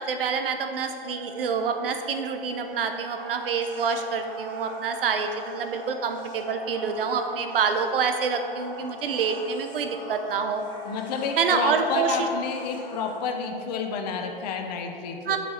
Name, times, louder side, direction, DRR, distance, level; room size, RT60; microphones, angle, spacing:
voice 1, 0.0-10.6 11.4-12.3 15.3-15.4, right 6 dB, 70° right, 6 dB, 1.0 m, -27 dB
sound 1, 1.0-14.3, right 1 dB, 30° right, 1.1 m, -45 dB
sound 2, 3.1-13.5, left 2 dB, 15° left, 1.2 m, -44 dB
voice 2, 10.8-15.4, left 5 dB, 45° left, 4 dB, 1.2 m, -30 dB
9.8 x 6.1 x 4.5 m, 2.6 s
hypercardioid pair, 135°, 29 cm